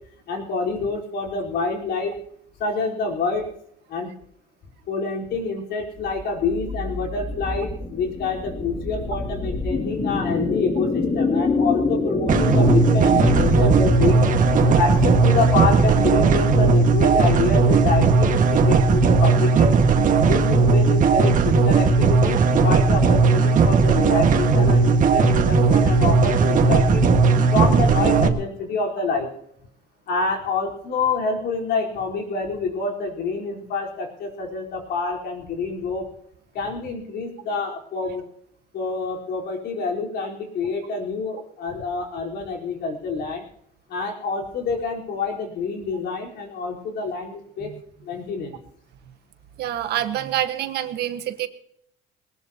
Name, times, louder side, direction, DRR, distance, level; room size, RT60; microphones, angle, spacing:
voice 1, 0.3-2.2 2.6-3.5 3.9-4.1 4.9-19.8 20.2-27.1 27.5-29.3 30.1-36.1 36.5-38.2 38.7-43.4 43.9-47.7 48.0-48.6, left 4 dB, 70° left, -1 dB, 4.5 m, -27 dB
sound 1, 6.0-19.2, left 3 dB, 40° left, 2.9 m, -27 dB
sound 2, 12.3-28.3, right 4 dB, 50° right, 1.9 m, -17 dB
voice 2, 49.6-51.5, right 12 dB, 75° right, 8 dB, 1.6 m, -26 dB
21.0 x 19.0 x 3.0 m, 0.69 s
cardioid pair, 110°, 17 cm